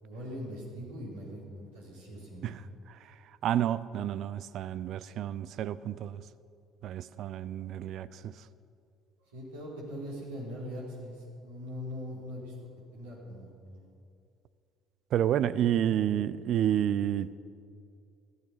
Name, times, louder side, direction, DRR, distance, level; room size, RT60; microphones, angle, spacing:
voice 1, 0.0-2.5 9.3-12.5 12.9-13.8 15.5-15.7, equal, 75° right, -5 dB, 4.9 m, -41 dB
voice 2, 3.4-6.2 6.8-8.4 15.1-17.4, right 10 dB, 55° right, 16 dB, 0.5 m, -30 dB
16.5 x 14.0 x 5.9 m, 2.5 s
figure-of-eight pair, 55°, 0 cm